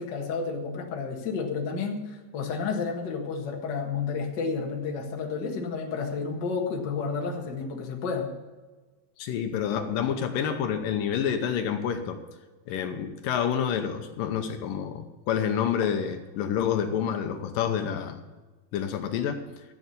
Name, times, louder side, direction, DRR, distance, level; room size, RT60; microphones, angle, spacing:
voice 1, 0.0-8.3, left 5 dB, 40° left, 1 dB, 1.7 m, -31 dB
voice 2, 9.2-12.2 12.7-18.2 18.7-19.6, left 8 dB, 75° left, 7 dB, 2.5 m, -28 dB
13.5 x 7.9 x 7.0 m, 1.3 s
omnidirectional pair, 4.1 m